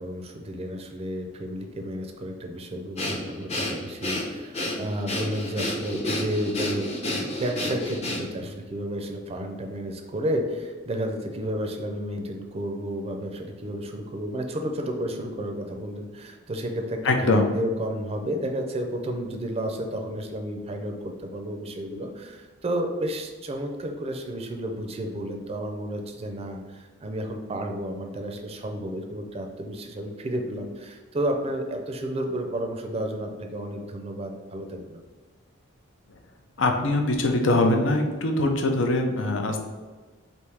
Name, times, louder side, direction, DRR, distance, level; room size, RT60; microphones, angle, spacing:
voice 1, 0.0-6.9 7.4-35.0, right 1 dB, 30° right, 4 dB, 0.4 m, -32 dB
Breathing, 3.0-8.5, left 1 dB, 35° left, 0.7 m, -30 dB
voice 2, 17.0-17.4 36.6-39.6, left 2 dB, 85° left, 3 dB, 0.6 m, -22 dB
3.4 x 2.6 x 4.6 m, 1.4 s
head